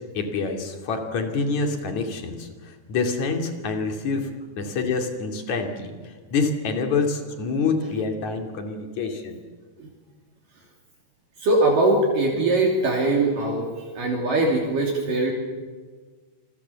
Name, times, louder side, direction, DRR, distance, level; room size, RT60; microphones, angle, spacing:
voice 1, 0.2-2.5 2.9-4.3 4.6-5.9 6.3-9.4, left 4 dB, 50° left, 4 dB, 3.7 m, -26 dB
voice 2, 11.4-15.3, right 2 dB, 60° right, -1 dB, 4.5 m, -21 dB
27.5 x 23.0 x 7.1 m, 1.5 s
omnidirectional pair, 4.6 m